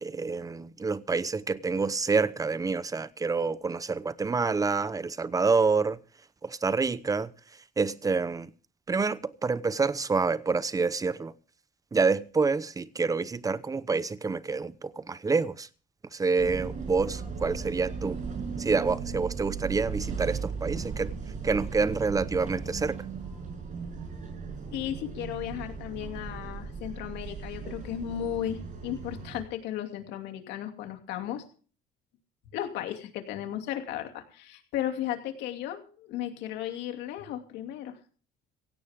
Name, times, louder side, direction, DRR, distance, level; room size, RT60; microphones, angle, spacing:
voice 1, 0.0-6.0 6.4-7.3 7.8-8.5 8.9-11.3 11.9-15.7 16.1-18.2 18.6-21.1 21.4-23.0, right 4 dB, 20° right, 0.9 m, -27 dB
sound 1, 16.4-29.4, right 5 dB, 50° right, 6.5 m, -37 dB
voice 2, 24.7-31.4 32.5-38.0, left 11 dB, 85° left, 2.7 m, -35 dB
16.5 x 16.5 x 3.6 m
cardioid pair, 110°, 17 cm